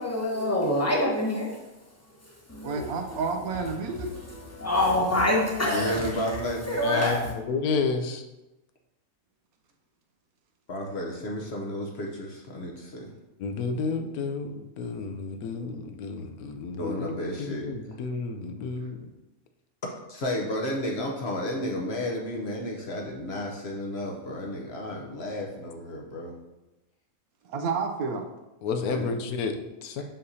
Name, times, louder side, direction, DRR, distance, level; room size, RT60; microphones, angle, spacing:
voice 1, 0.0-1.5 2.5-3.2 4.5-6.0 6.7-7.2, left 1 dB, 10° left, 0.9 m, -25 dB
voice 2, 2.6-4.1 27.5-28.2, right 4 dB, 80° right, 1.1 m, -30 dB
voice 3, 5.7-6.7 10.7-13.1 16.8-17.7 20.1-26.3 28.9-29.1, left 1 dB, 50° left, 1.0 m, -32 dB
voice 4, 6.7-8.2 13.4-19.1 28.6-30.0, left 4 dB, 90° left, 1.2 m, -31 dB
6.4 x 5.7 x 2.7 m
omnidirectional pair, 1.5 m